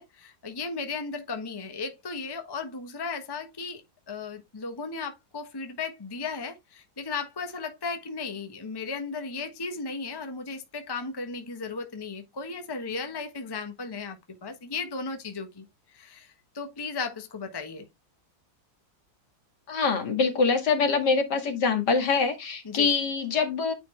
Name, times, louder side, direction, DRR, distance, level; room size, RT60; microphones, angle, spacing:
voice 1, 0.0-15.6 15.9-17.9 22.6-22.9, left 4 dB, 15° left, 1.0 m, -35 dB
voice 2, 19.7-23.7, left 4 dB, 65° left, 2.4 m, -24 dB
9.3 x 4.2 x 3.3 m
omnidirectional pair, 2.0 m